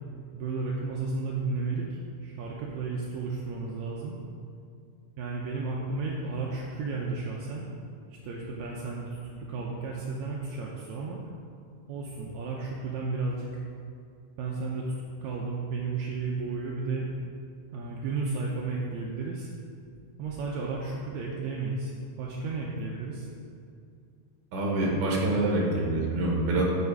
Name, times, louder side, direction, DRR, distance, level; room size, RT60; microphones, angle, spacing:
voice 1, 0.3-4.1 5.2-7.7 8.2-9.1 9.4-11.2 11.9-13.5 14.4-15.0 15.2-17.1 17.7-19.5 20.2-21.9 22.2-23.3, right 3 dB, 75° right, -3 dB, 1.9 m, -33 dB
voice 2, 24.5-26.6, right 2 dB, 55° right, -2 dB, 2.0 m, -26 dB
8.2 x 5.7 x 4.7 m, 2.4 s
omnidirectional pair, 3.5 m